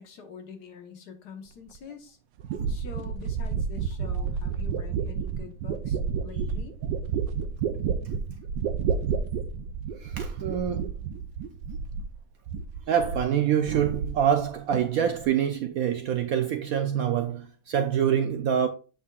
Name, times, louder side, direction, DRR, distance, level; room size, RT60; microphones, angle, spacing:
voice 1, 0.0-2.2 2.7-6.8, left 6 dB, 65° left, 1.7 m, -45 dB
sound 1, 1.7-1.8 2.5-12.2 12.5-13.3 13.6-14.5 14.7-15.2, right 6 dB, 85° right, 1.3 m, -30 dB
voice 2, 10.0-11.1 12.9-18.7, right 9 dB, 70° right, 0.8 m, -26 dB
7.8 x 5.9 x 2.4 m
omnidirectional pair, 1.9 m